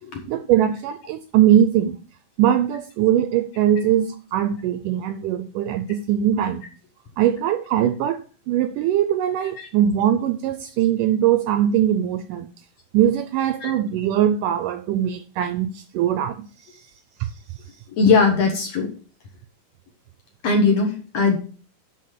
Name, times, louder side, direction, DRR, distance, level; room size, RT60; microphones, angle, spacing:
voice 1, 0.3-2.0 2.4-6.6 7.2-8.2 8.5-12.5 12.9-16.8 17.2-17.3, right 10 dB, 80° right, 1.9 m, -21 dB
voice 2, 17.9-18.9 20.4-21.4, left 4 dB, 55° left, 2.0 m, -19 dB
11.0 x 4.2 x 6.5 m
omnidirectional pair, 4.2 m